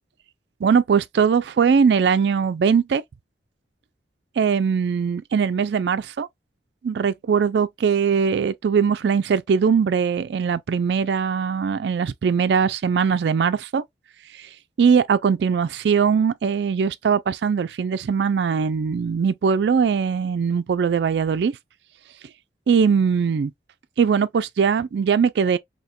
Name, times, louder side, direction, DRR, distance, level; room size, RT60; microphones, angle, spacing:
voice 1, 0.6-3.0 4.4-6.3 6.8-13.8 14.3-14.5 14.8-21.6 22.7-23.5 24.0-25.6, right 6 dB, 65° right, 0.3 m, -20 dB
4.2 x 2.8 x 2.2 m
head